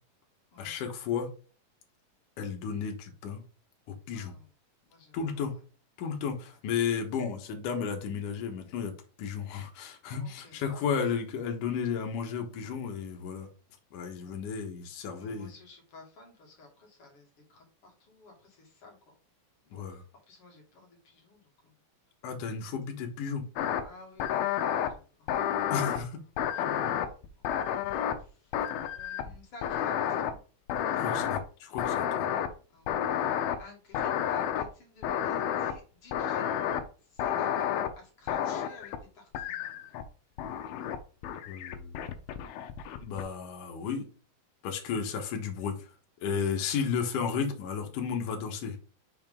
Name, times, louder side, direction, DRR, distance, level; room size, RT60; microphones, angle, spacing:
voice 1, 0.6-1.3 2.4-3.4 4.1-4.4 5.1-5.5 6.0-8.9 9.2-13.5 13.9-15.5 19.7-20.0 22.2-23.4 25.7-26.2 26.9-27.0 31.0-32.3 41.3-42.1 43.0-44.0 44.6-45.9 46.2-48.8, left 6 dB, 65° left, 3 dB, 2.6 m, -33 dB
voice 2, 4.1-4.5 4.8-5.2 6.5-6.6 10.2-11.0 14.2-14.4 15.1-19.0 19.6-21.7 23.8-25.3 26.5-27.2 28.2-28.5 28.9-30.4 30.9-31.0 32.7-33.2 33.6-36.5 37.1-39.8, left 3 dB, 45° left, 0 dB, 2.7 m, -54 dB
sound 1, 23.6-23.8 24.2-24.9 25.3-26.0 26.4-28.2 28.5-29.4 29.6-30.3 30.7-31.4 31.8-32.5 32.9-33.6 33.9-34.6 35.0-35.7 36.1-36.8 37.2-37.9 38.3-39.0 39.3-40.0 40.4-41.0 41.2-43.2, left 9 dB, 85° left, 2.7 m, -30 dB
6.6 x 4.4 x 3.6 m, 0.36 s
omnidirectional pair, 4.2 m